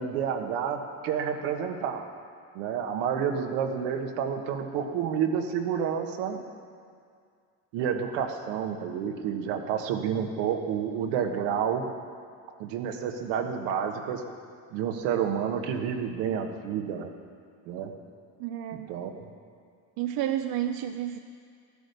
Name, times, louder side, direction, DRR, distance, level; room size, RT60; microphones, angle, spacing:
voice 1, 0.0-2.1 2.5-6.4 7.7-11.8 12.6-14.2 14.7-17.1 17.7-17.9 18.9-19.3, right 7 dB, 85° right, 4 dB, 1.5 m, -29 dB
voice 2, 18.4-18.9 20.0-21.2, right 11 dB, 65° right, 7 dB, 0.7 m, -31 dB
13.5 x 10.0 x 6.8 m, 2.2 s
cardioid pair, 110°, 39 cm